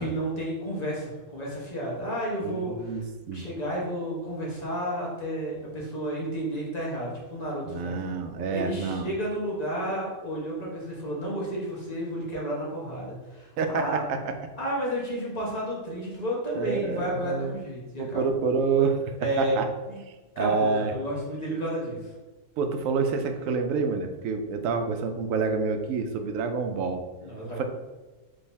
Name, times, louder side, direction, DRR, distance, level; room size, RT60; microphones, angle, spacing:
voice 1, 0.0-3.0 3.3-8.0 8.5-14.0 14.6-18.3 19.2-19.5 19.9-20.0 20.4-22.1 27.2-27.6, right 1 dB, 35° left, -5 dB, 1.1 m, -32 dB
voice 2, 2.4-3.0 3.3-3.4 7.7-9.1 13.6-14.2 16.5-17.5 18.0-19.0 19.4-19.7 20.4-20.9 22.6-27.0 27.6-27.7, right 4 dB, 90° right, 6 dB, 1.0 m, -27 dB
3.8 x 3.3 x 4.0 m, 1.2 s
omnidirectional pair, 1.3 m